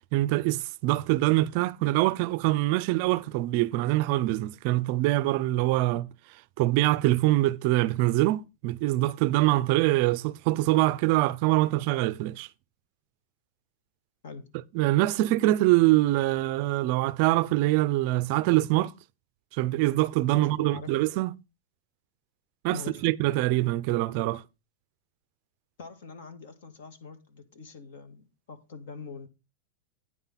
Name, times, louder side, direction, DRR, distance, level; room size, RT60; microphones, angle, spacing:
voice 1, 0.1-6.1 6.6-12.5 14.7-18.9 19.5-21.3 22.6-24.4, right 17 dB, 40° right, 0.4 m, -24 dB
voice 2, 20.3-20.9 22.7-23.1 25.8-29.3, left 4 dB, 55° left, 1.8 m, -43 dB
9.6 x 5.7 x 5.7 m
supercardioid pair, 180°, 0 cm